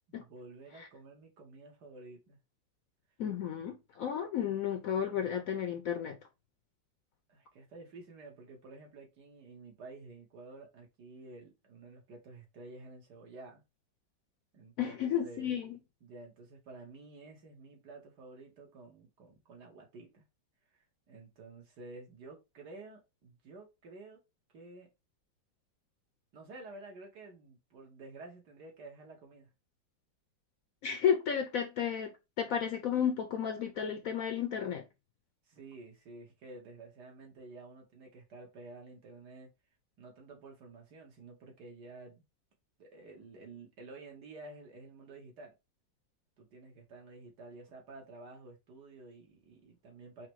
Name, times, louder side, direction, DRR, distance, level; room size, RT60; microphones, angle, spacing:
voice 1, 0.1-2.4 7.3-13.6 14.5-15.0 15.2-15.5 16.0-20.2 21.1-24.2 24.5-24.9 26.3-29.5 35.5-39.5 40.0-42.2 42.8-45.5 46.4-50.3, right 3 dB, 70° right, 1.9 m, -51 dB
voice 2, 3.2-6.2 14.8-15.8 30.8-34.8, left 8 dB, 65° left, 0.9 m, -33 dB
4.8 x 2.2 x 4.5 m
omnidirectional pair, 1.9 m